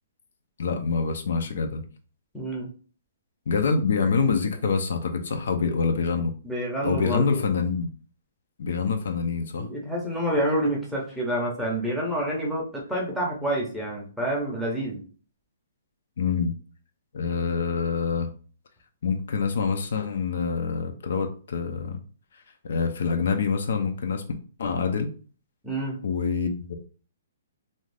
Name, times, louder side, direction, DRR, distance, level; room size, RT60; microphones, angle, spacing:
voice 1, 0.6-1.8 3.5-6.3 6.8-7.9 8.6-9.7 16.2-16.5 17.1-18.3 19.0-22.0 22.6-24.2 24.6-25.1 26.0-26.8, left 5 dB, 60° left, 6 dB, 0.5 m, -26 dB
voice 2, 2.3-2.7 6.4-7.4 9.6-15.0 25.6-26.0, right 1 dB, ahead, -4 dB, 0.6 m, -28 dB
2.6 x 2.4 x 3.3 m, 0.39 s
hypercardioid pair, 170°, 0 cm